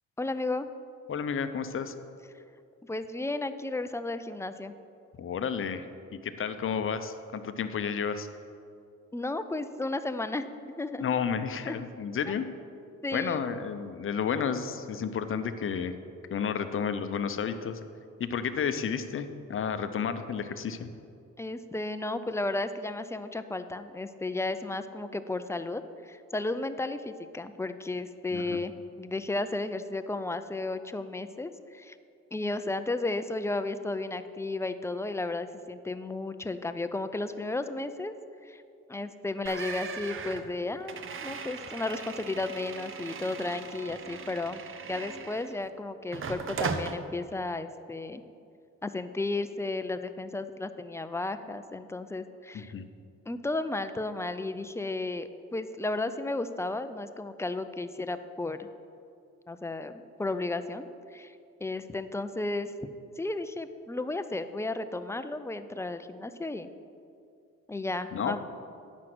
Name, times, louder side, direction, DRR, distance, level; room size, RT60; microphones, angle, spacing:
voice 1, 0.2-0.7 2.9-4.7 9.1-11.0 11.7-11.8 13.0-13.4 21.4-28.7 29.0-32.0 32.3-38.1 38.4-38.6 38.9-44.6 44.9-48.2 48.8-52.7 53.3-58.7 59.5-61.3 61.6-62.9 63.2-66.7 67.7-68.4, left 2 dB, 10° left, 10 dB, 0.4 m, -33 dB
voice 2, 1.1-1.9 5.2-5.9 6.1-8.3 11.0-12.5 13.1-15.9 16.3-17.8 18.2-20.9 28.3-28.6 52.5-52.9 68.1-68.4, left 7 dB, 45° left, 10 dB, 0.7 m, -31 dB
sound 1, 39.5-45.7 46.1-47.0, right 5 dB, 45° right, 0.7 m, -38 dB
9.4 x 6.2 x 6.0 m, 2.4 s
cardioid pair, 90°, 30 cm